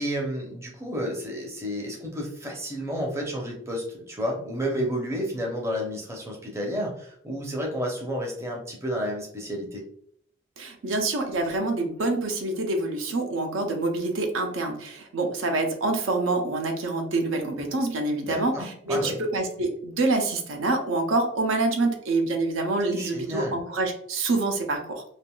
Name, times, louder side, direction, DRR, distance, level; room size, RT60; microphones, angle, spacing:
voice 1, 0.0-9.8 18.2-19.2 23.0-23.6, equal, 15° right, -1 dB, 0.5 m, -31 dB
voice 2, 10.6-25.0, right 2 dB, 85° right, 3 dB, 0.6 m, -26 dB
3.4 x 2.5 x 2.2 m, 0.66 s
head